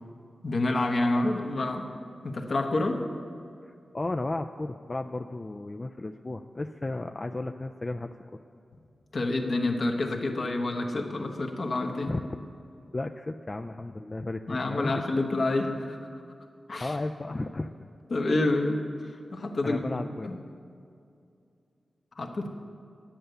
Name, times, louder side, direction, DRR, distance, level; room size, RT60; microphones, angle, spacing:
voice 1, 0.4-1.9 2.2-3.0 9.1-12.1 14.5-16.0 16.7-16.9 18.1-20.4 22.2-22.5, left 2 dB, 60° left, 3 dB, 1.1 m, -28 dB
voice 2, 3.6-8.1 12.1-12.3 12.9-15.2 16.8-17.7 18.5-18.6 19.6-20.4, left 2 dB, 30° left, 5 dB, 0.3 m, -34 dB
10.0 x 7.8 x 6.7 m, 2.5 s
wide cardioid pair, 80°, 0 cm